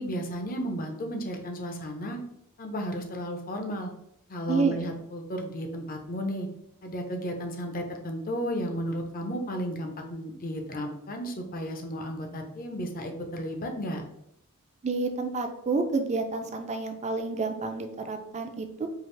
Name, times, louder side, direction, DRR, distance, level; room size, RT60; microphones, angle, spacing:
voice 1, 0.0-2.2 2.6-3.9 4.3-6.5 6.8-14.0, equal, 40° left, 4 dB, 0.6 m, -33 dB
voice 2, 4.5-4.8 14.8-18.9, right 4 dB, 30° right, 6 dB, 0.4 m, -29 dB
4.7 x 2.4 x 3.2 m, 0.78 s
head